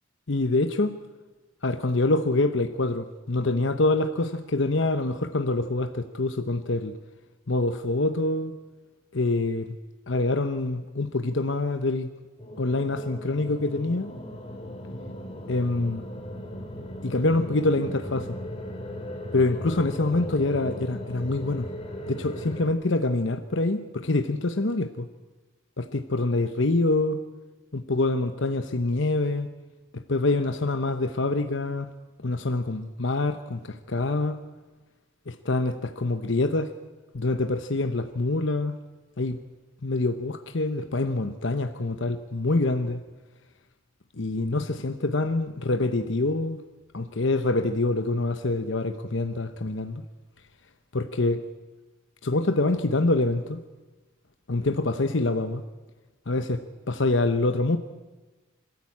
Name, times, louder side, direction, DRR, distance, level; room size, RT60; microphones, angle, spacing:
voice 1, 0.3-1.0 1.6-7.0 7.5-8.5 9.1-9.8 10.1-12.1 12.6-14.1 15.5-16.0 17.0-18.4 19.3-21.7 22.1-25.1 25.8-27.2 27.7-29.5 29.9-31.9 32.2-34.4 35.3-36.7 37.1-38.7 39.2-39.4 39.8-43.0 44.2-46.6 46.9-50.0 50.9-51.4 52.2-53.6 54.5-55.6 56.3-57.8, left 2 dB, 65° left, 8 dB, 1.0 m, -25 dB
sound 1, 12.4-22.7, equal, 30° left, 2.4 m, -37 dB
26.5 x 13.5 x 8.6 m, 1.2 s
head